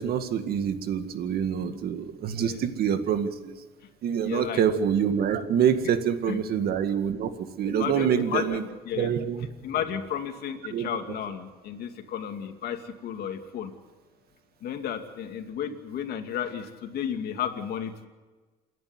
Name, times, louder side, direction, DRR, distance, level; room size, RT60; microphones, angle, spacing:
voice 1, 0.0-3.5 4.0-7.3 7.6-8.7 9.0-9.5 10.7-10.9, right 8 dB, 65° right, 8 dB, 2.0 m, -26 dB
voice 2, 4.2-4.6 6.3-6.4 7.6-8.6 8.9-9.1 9.6-13.7 14.6-18.1, left 9 dB, 65° left, 5 dB, 2.5 m, -33 dB
28.0 x 11.0 x 9.7 m, 1.3 s
cardioid pair, 110°, 17 cm